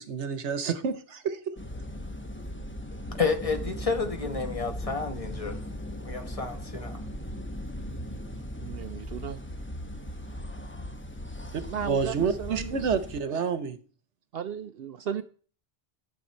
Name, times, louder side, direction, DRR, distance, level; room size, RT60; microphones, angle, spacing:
voice 1, 0.0-1.6 11.5-13.8, right 6 dB, 80° right, 1.3 m, -29 dB
sound 1, 1.6-13.2, equal, 10° left, 0.8 m, -38 dB
voice 2, 3.2-5.6 6.0-7.0, left 4 dB, 30° left, 1.1 m, -30 dB
voice 3, 8.6-9.4 11.6-12.8 14.3-15.2, right 8 dB, 65° right, 0.8 m, -35 dB
11.5 x 6.5 x 4.4 m
omnidirectional pair, 1.2 m